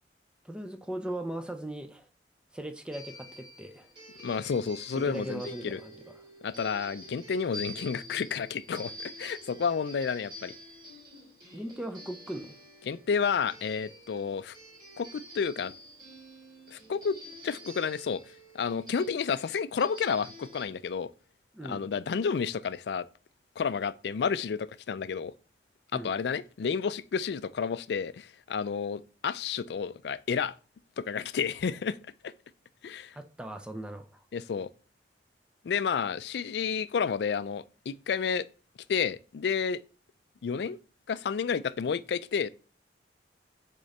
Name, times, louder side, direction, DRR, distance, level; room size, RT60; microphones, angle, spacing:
voice 1, 0.4-2.1 2.5-3.9 5.0-6.2 11.5-12.5 21.5-21.9 25.9-26.1 33.1-34.2, right 1 dB, 5° right, 0.5 m, -38 dB
sound 1, 2.9-20.6, equal, 25° right, 2.8 m, -48 dB
voice 2, 4.2-5.8 6.4-10.5 12.9-14.5 15.0-15.7 16.7-17.2 17.4-18.2 18.5-21.1 21.6-23.1 23.6-25.3 25.9-30.5 31.0-32.0 32.2-32.3 32.8-33.1 34.3-34.7 35.6-38.5 38.9-39.8 40.4-40.8 41.1-42.5, left 6 dB, 70° left, 0.4 m, -31 dB
6.6 x 3.7 x 4.1 m
head